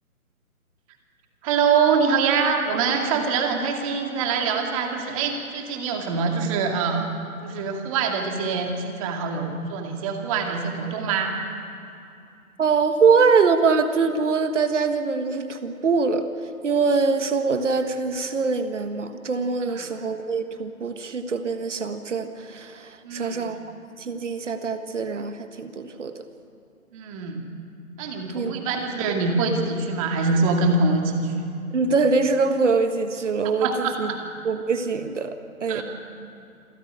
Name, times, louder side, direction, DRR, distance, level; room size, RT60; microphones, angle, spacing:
voice 1, 1.4-7.1 7.4-11.4 19.6-19.9 23.0-23.5 26.9-27.4 28.0-31.5 33.4-34.2 35.7-35.8, right 5 dB, 25° right, 3 dB, 2.3 m, -24 dB
voice 2, 12.6-16.3 16.6-23.6 24.0-26.1 28.3-28.5 31.7-34.1 34.4-35.3 35.6-35.8, right 4 dB, 55° right, 8 dB, 1.6 m, -23 dB
27.0 x 14.0 x 9.3 m, 2.6 s
figure-of-eight pair, 145°, 44 cm